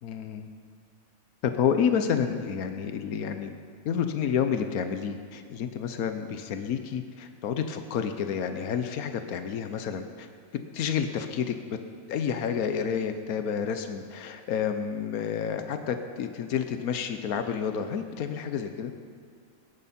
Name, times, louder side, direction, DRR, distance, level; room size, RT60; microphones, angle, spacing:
voice 1, 0.0-0.5 1.4-3.6 3.8-10.3 10.5-11.6 12.1-18.9, left 7 dB, 80° left, 8 dB, 1.3 m, -29 dB
21.5 x 11.0 x 4.3 m, 2.2 s
omnidirectional pair, 1.5 m